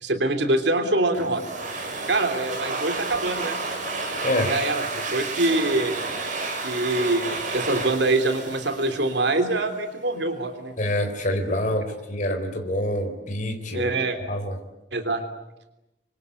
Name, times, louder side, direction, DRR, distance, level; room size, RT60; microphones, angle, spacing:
voice 1, 0.0-1.4 2.1-3.6 4.5-4.8 5.1-5.9 6.6-10.7 13.7-14.2 14.9-15.2, right 2 dB, 65° right, 7 dB, 3.3 m, -24 dB
Domestic sounds home sounds, 1.1-9.6, right 3 dB, 45° right, 6.8 m, -31 dB
voice 2, 10.8-13.9 14.3-14.6, left 1 dB, 45° left, 5 dB, 4.1 m, -26 dB
28.0 x 24.5 x 8.4 m, 0.92 s
head